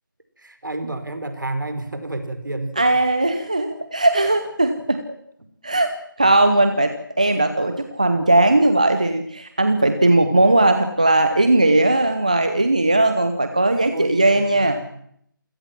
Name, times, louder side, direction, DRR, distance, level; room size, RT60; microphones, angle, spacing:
voice 1, 0.4-2.9 10.1-10.4 13.9-15.0, right 2 dB, 60° right, 8 dB, 5.0 m, -30 dB
voice 2, 2.8-5.0 5.6-5.9 6.2-14.8, right 2 dB, 20° right, 8 dB, 0.9 m, -18 dB
28.0 x 17.0 x 7.6 m, 0.69 s
figure-of-eight pair, 180°, 12 cm